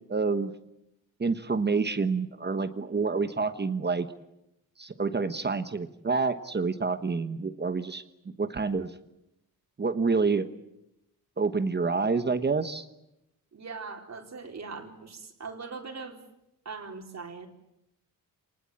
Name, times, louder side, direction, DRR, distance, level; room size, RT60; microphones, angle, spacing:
voice 1, 0.1-0.5 1.2-4.1 4.8-8.0 8.4-8.9 9.8-10.5 11.4-12.9, right 4 dB, 30° right, 10 dB, 1.2 m, -28 dB
voice 2, 13.5-16.2 16.7-17.5, right 4 dB, 50° right, 3 dB, 4.1 m, -40 dB
29.5 x 20.0 x 8.8 m, 0.87 s
wide cardioid pair, 165°, 36 cm